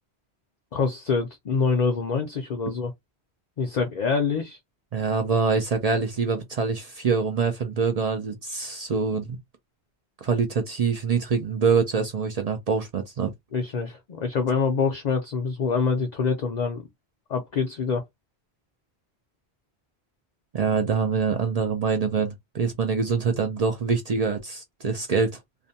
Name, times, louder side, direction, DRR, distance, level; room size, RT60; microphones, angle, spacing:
voice 1, 0.7-2.9 3.6-4.6 13.5-16.9 17.3-18.0, left 5 dB, 50° left, 0.5 m, -25 dB
voice 2, 4.9-9.4 10.2-13.3 20.5-25.4, right 5 dB, 50° right, 0.5 m, -25 dB
2.5 x 2.1 x 2.7 m
omnidirectional pair, 1.1 m